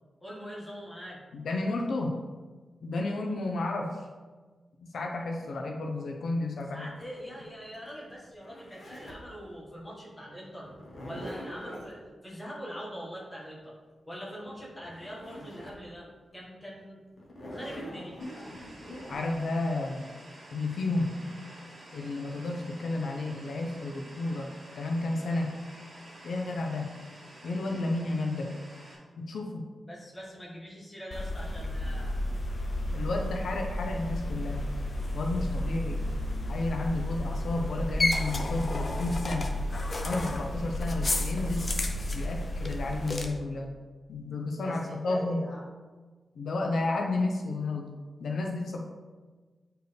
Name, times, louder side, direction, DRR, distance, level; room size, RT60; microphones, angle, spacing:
voice 1, 0.2-1.2 6.7-10.7 11.0-13.7 14.1-16.1 16.3-17.0 17.5-18.2 29.8-32.2 44.5-45.6, equal, 15° left, -5 dB, 1.6 m, -43 dB
voice 2, 1.3-2.2 2.8-4.1 4.8-6.9 19.1-20.1 20.5-21.2 21.9-24.5 24.7-25.6 26.2-26.9 27.4-28.5 29.2-29.7 32.9-34.6 35.1-36.0 36.5-39.5 40.0-41.7 42.1-43.7 44.1-45.5 46.3-47.9 48.2-48.8, left 2 dB, 75° left, 1 dB, 0.7 m, -32 dB
Zipper (clothing), 6.6-9.3 10.6-11.9 14.5-14.6 14.8-15.8 16.3-16.4 17.2-19.2, equal, 50° left, 1.4 m, -43 dB
sound 1, 18.2-28.9, right 1 dB, 30° right, 1.9 m, -50 dB
sound 2, 31.1-43.3, left 1 dB, 35° left, 0.6 m, -31 dB
8.0 x 4.5 x 3.4 m, 1.4 s
wide cardioid pair, 175°, 0 cm